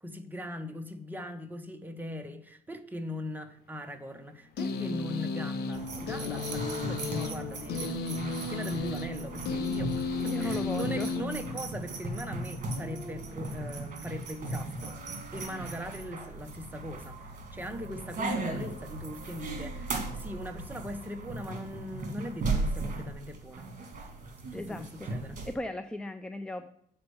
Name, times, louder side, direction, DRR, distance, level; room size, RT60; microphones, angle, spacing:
voice 1, 0.0-15.0 15.3-23.7 24.5-25.4, left 1 dB, 10° right, 1.0 m, -40 dB
sound 1, 4.6-12.0, left 4 dB, 85° left, 0.9 m, -34 dB
sound 2, 5.7-25.5, right 2 dB, 50° right, 1.9 m, -37 dB
voice 2, 10.3-11.1 24.5-25.1 25.4-26.7, left 1 dB, 5° left, 0.4 m, -37 dB
7.7 x 4.4 x 6.9 m
cardioid pair, 110°, 17 cm